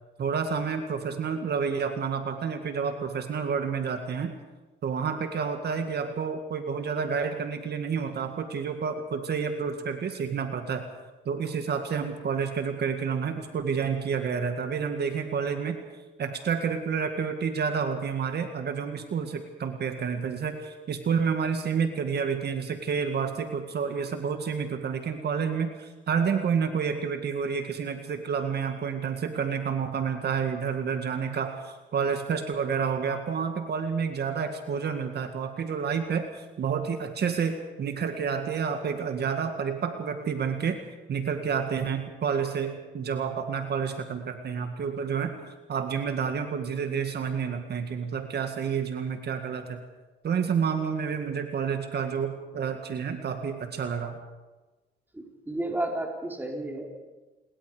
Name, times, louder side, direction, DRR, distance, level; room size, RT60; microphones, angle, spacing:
voice 1, 0.2-4.3 4.8-10.9 11.3-15.8 16.2-40.8 41.1-45.4 45.7-49.8 50.2-54.2, right 6 dB, 55° right, 6 dB, 2.0 m, -29 dB
voice 2, 55.1-56.9, right 1 dB, 10° right, 0 dB, 4.2 m, -32 dB
28.5 x 21.5 x 5.0 m, 1.2 s
cardioid pair, 90°, 20 cm